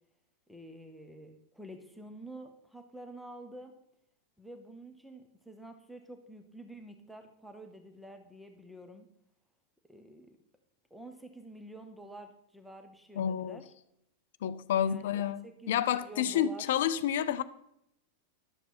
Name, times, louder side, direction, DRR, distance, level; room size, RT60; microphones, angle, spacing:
voice 1, 0.5-3.7 4.4-9.1 9.9-10.4 10.9-13.7 14.8-16.6, right 1 dB, ahead, 1.0 m, -49 dB
voice 2, 13.2-13.6 14.4-15.4 15.7-17.4, left 10 dB, 55° left, 0.5 m, -29 dB
11.5 x 7.4 x 4.2 m
figure-of-eight pair, 90°, 0 cm